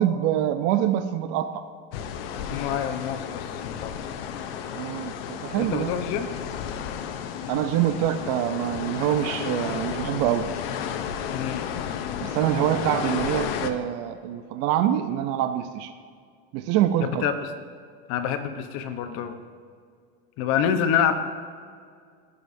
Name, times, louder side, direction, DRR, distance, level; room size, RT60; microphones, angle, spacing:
voice 1, 0.0-1.7 4.7-5.9 7.5-10.5 12.2-15.9 16.5-17.3, right 11 dB, 60° right, 10 dB, 0.6 m, -25 dB
sound 1, 1.9-13.7, left 8 dB, 80° left, 0.8 m, -32 dB
voice 2, 2.5-3.9 5.6-6.3 11.3-11.7 17.0-17.3 18.1-19.3 20.4-21.1, left 8 dB, 55° left, 7 dB, 1.0 m, -26 dB
16.0 x 6.7 x 2.7 m, 2.1 s
supercardioid pair, 135°, 29 cm